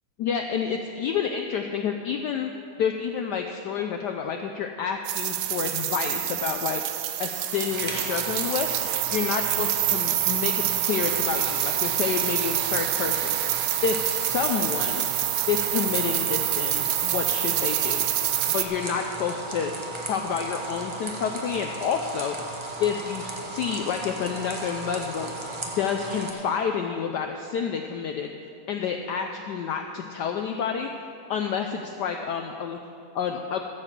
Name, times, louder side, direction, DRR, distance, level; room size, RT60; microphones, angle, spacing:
voice 1, 0.2-2.5 2.8-6.8 7.2-8.7 9.1-15.1 15.5-18.1 18.5-22.4 22.8-25.3 25.8-28.3 28.7-30.9 31.3-32.8 33.1-33.6, left 7 dB, 85° left, 4 dB, 0.9 m, -29 dB
sound 1, 5.1-18.7, right 13 dB, 80° right, 1.4 m, -27 dB
sound 2, 7.7-26.3, right 2 dB, 45° right, 0.3 m, -36 dB
14.0 x 5.0 x 7.3 m, 2.6 s
omnidirectional pair, 2.3 m